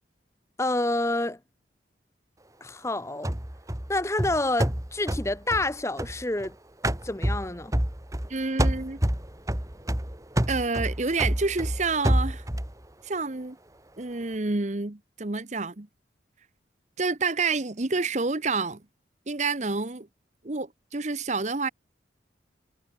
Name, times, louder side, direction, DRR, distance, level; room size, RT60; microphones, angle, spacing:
voice 1, 0.6-1.4 2.6-3.3 3.9-6.5 7.0-7.7, left 2 dB, 15° left, 1.0 m, -28 dB
sound 1, 3.2-6.5 6.8-8.3 8.6-12.7, right 1 dB, 20° right, 1.8 m, -28 dB
voice 2, 8.3-9.0 10.5-12.4 13.0-13.6 14.0-15.9 17.0-18.8 19.3-20.1 20.4-21.7, right 3 dB, 40° right, 1.1 m, -28 dB
head